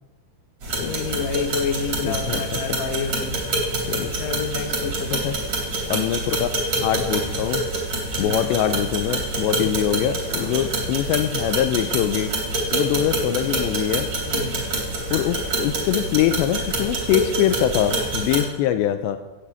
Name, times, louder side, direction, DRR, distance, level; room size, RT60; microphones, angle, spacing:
sound 1, 0.6-18.4, right 2 dB, 35° right, 4.1 m, -26 dB
voice 1, 0.8-3.4 4.2-5.3 8.2-8.4 9.6-9.8 14.3-14.7 18.4-18.5, left 5 dB, 60° left, 4 dB, 1.9 m, -28 dB
voice 2, 2.0-2.6 3.9-4.1 5.2-5.3 5.9-6.5 6.8-7.6 8.2-12.3 12.7-14.1 15.1-19.2, left 11 dB, 80° left, 9 dB, 2.8 m, -23 dB
17.0 x 7.8 x 8.4 m, 1.1 s
omnidirectional pair, 5.4 m